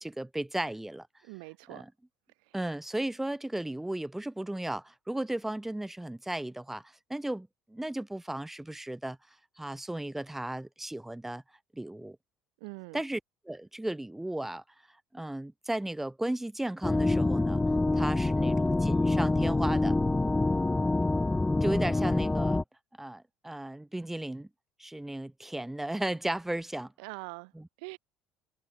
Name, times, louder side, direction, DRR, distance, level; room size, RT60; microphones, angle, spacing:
voice 1, 0.0-1.1 1.7-1.9 2.5-9.2 9.6-11.4 11.7-12.2 12.9-13.2 13.5-14.6 15.1-17.6 17.9-19.9 21.6-22.6 23.0-24.5 24.8-26.9 27.5-27.7, right 1 dB, 5° right, 2.2 m, -35 dB
voice 2, 1.2-1.8 2.5-2.6 12.6-13.0 27.0-27.5 27.8-28.0, right 32 dB, 70° right, 3.0 m, -43 dB
sound 1, 16.8-22.6, left 2 dB, 15° left, 2.0 m, -26 dB
hypercardioid pair, 65°, 4 cm